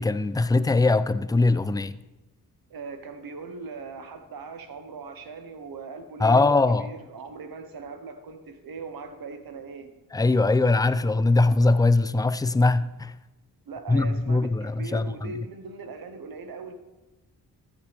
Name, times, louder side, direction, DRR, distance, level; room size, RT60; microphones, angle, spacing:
voice 1, 0.0-2.0 6.2-6.9 10.1-13.1 13.9-15.3, left 3 dB, 10° left, 0.4 m, -21 dB
voice 2, 2.7-6.4 6.8-9.9 13.7-16.7, right 4 dB, 65° right, 1.2 m, -40 dB
13.5 x 7.5 x 3.5 m
cardioid pair, 60°, 38 cm